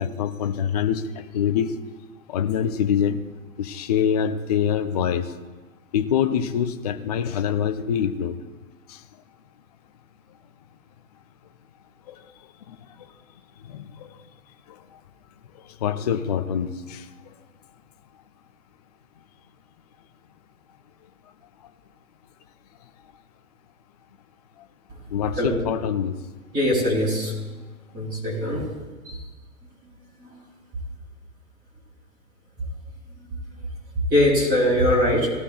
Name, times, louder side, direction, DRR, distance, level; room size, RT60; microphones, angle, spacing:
voice 1, 0.0-1.8 2.3-3.2 3.6-5.3 5.9-8.4 8.9-9.0 12.1-12.3 12.7-13.1 13.6-14.2 14.7-15.0 15.6-17.3 25.1-26.2, left 8 dB, 30° left, 9 dB, 0.4 m, -25 dB
voice 2, 26.5-27.3 27.9-28.6 29.1-29.2 30.2-30.3 34.1-35.3, left 1 dB, 20° right, -5 dB, 3.9 m, -21 dB
18.0 x 13.0 x 2.3 m, 1.3 s
figure-of-eight pair, 125°, 42 cm